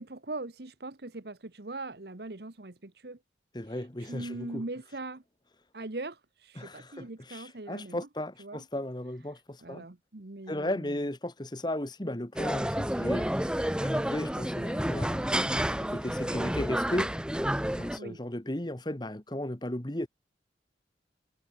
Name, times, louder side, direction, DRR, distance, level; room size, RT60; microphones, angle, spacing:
voice 1, 0.0-3.2 3.6-5.2 5.7-8.1 8.4-8.6 9.6-11.0 18.0-18.2, right 2 dB, 60° right, 1.3 m, -41 dB
voice 2, 3.5-4.6 6.6-9.9 10.5-13.3 13.8-15.3 15.8-17.1 17.7-20.1, left 1 dB, 25° left, 1.5 m, -35 dB
sound 1, 12.4-18.0, equal, 5° right, 1.0 m, -30 dB
head